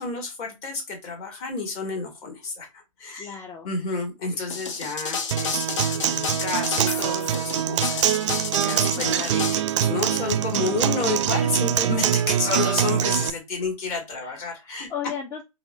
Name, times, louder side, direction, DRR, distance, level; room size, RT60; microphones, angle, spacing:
voice 1, 0.0-3.3 3.6-14.9, left 4 dB, 35° left, 2 dB, 1.3 m, -30 dB
voice 2, 3.2-3.7 14.2-15.4, left 8 dB, 20° left, 3 dB, 0.4 m, -36 dB
sound 1, 4.5-9.5, left 5 dB, 60° left, 0.8 m, -30 dB
Acoustic guitar, 5.3-13.3, right 10 dB, 60° right, 0.4 m, -24 dB
3.6 x 2.1 x 3.1 m, 0.24 s
hypercardioid pair, 120°, 18 cm